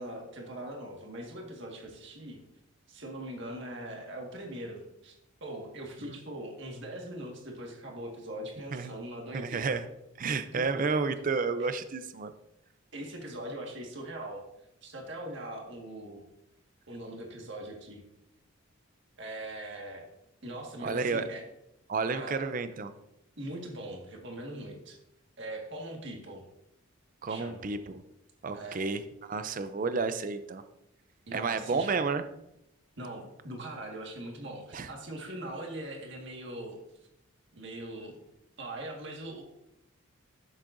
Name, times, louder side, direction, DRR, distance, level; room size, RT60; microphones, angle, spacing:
voice 1, 0.0-2.4 2.9-9.7 10.5-10.8 11.6-11.7 12.9-14.4 14.8-16.2 16.9-18.0 19.2-20.0 20.4-21.4 22.1-22.4 23.4-25.0 25.4-26.4 27.3-27.6 28.5-28.8 31.3-31.9 33.0-36.8 37.5-38.2 38.6-39.4, right 1 dB, 55° right, 0 dB, 1.7 m, -41 dB
voice 2, 9.3-9.9 10.2-12.3 20.8-21.3 21.9-22.9 27.2-28.0 28.4-30.6 31.3-32.2 34.7-34.9, right 4 dB, 40° right, 10 dB, 0.5 m, -31 dB
10.5 x 7.5 x 2.6 m, 0.85 s
head